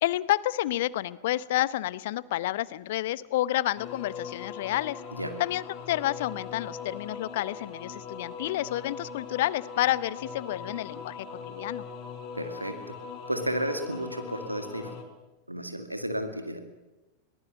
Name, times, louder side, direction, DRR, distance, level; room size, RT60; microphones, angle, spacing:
voice 1, 0.0-5.0 5.4-11.8, left 15 dB, 55° left, 19 dB, 0.8 m, -29 dB
sound 1, 3.8-15.0, left 6 dB, 40° left, 4.1 m, -40 dB
voice 2, 12.4-13.0 13.3-15.0 15.5-16.6, right 1 dB, 85° right, 8 dB, 2.0 m, -33 dB
22.5 x 19.5 x 7.5 m, 1.1 s
figure-of-eight pair, 90°, 0 cm